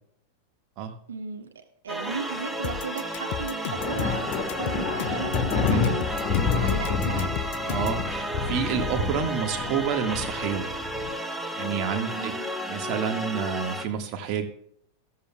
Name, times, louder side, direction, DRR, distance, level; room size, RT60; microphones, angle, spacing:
voice 1, 1.1-6.0 6.5-7.3 12.1-12.5, right 5 dB, 70° right, 4 dB, 1.4 m, -35 dB
sound 1, 1.9-13.9, equal, ahead, 1.0 m, -33 dB
sound 2, 2.6-8.0, left 11 dB, 50° left, 0.6 m, -34 dB
sound 3, 3.8-11.1, left 6 dB, 25° left, 2.2 m, -29 dB
voice 2, 7.7-10.7 11.3-12.3 12.7-14.5, right 7 dB, 40° right, 4 dB, 1.7 m, -29 dB
14.0 x 14.0 x 2.3 m, 0.67 s
figure-of-eight pair, 90°, 0 cm